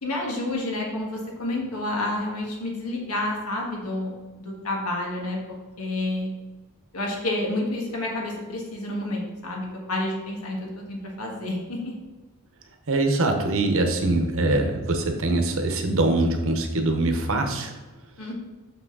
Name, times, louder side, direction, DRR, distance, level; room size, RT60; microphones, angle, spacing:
voice 1, 0.0-4.1 4.4-5.4 5.8-6.3 6.9-11.9 18.2-18.3, left 1 dB, 75° left, -1 dB, 1.7 m, -29 dB
voice 2, 12.9-17.7, right 2 dB, 65° right, 4 dB, 1.0 m, -23 dB
6.4 x 6.1 x 3.9 m, 1.3 s
head